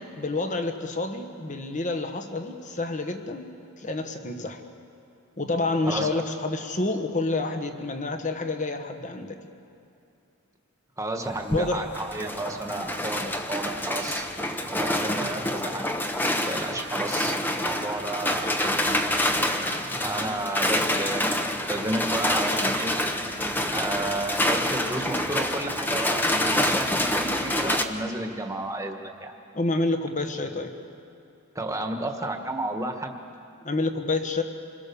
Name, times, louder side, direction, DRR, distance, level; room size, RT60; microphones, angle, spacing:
voice 1, 0.2-4.6 5.4-9.4 11.5-11.9 29.5-30.7 33.6-34.4, left 2 dB, 35° left, 6 dB, 1.5 m, -28 dB
voice 2, 5.9-6.2 11.0-16.0 16.5-19.0 20.0-22.9 23.7-29.3 31.5-33.2, right 2 dB, 15° right, 4 dB, 1.5 m, -32 dB
sound 1, 11.2-27.8, left 1 dB, 10° left, 1.0 m, -27 dB
27.0 x 21.5 x 7.0 m, 2.6 s
head